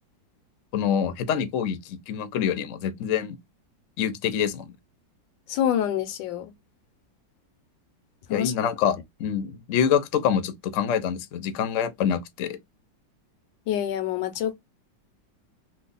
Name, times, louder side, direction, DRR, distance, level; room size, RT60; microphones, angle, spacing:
voice 1, 0.7-3.4 4.0-4.7 8.3-12.6, left 8 dB, 60° left, 0.8 m, -26 dB
voice 2, 5.5-6.5 8.3-8.5 13.7-14.5, left 10 dB, 90° left, 1.4 m, -26 dB
3.1 x 2.1 x 3.8 m
omnidirectional pair, 2.0 m